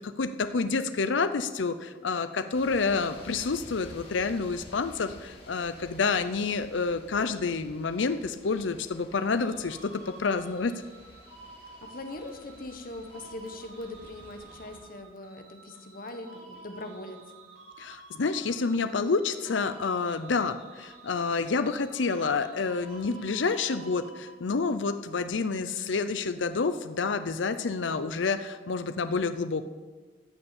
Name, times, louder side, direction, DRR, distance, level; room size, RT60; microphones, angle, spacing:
voice 1, 0.0-10.8 17.8-29.7, left 4 dB, 75° left, 10 dB, 0.6 m, -29 dB
sound 1, 2.5-14.8, left 1 dB, 30° left, 3.9 m, -51 dB
sound 2, 9.4-24.6, right 3 dB, 65° right, 4.8 m, -51 dB
voice 2, 11.6-17.2, left 2 dB, 50° left, 6 dB, 1.4 m, -41 dB
14.5 x 7.0 x 8.5 m, 1.4 s
head